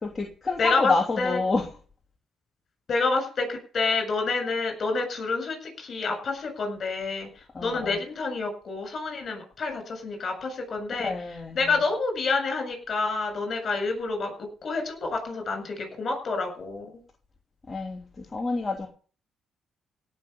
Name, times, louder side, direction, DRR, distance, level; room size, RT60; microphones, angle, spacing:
voice 1, 0.0-1.7 7.5-8.0 11.0-11.8 17.7-18.9, left 3 dB, 30° left, 1 dB, 2.8 m, -28 dB
voice 2, 0.6-1.4 2.9-7.3 7.6-11.1 11.5-14.3 14.6-16.9, left 3 dB, 50° left, 5 dB, 7.7 m, -28 dB
17.0 x 6.8 x 8.3 m, 0.41 s
cardioid pair, 90°, 0 cm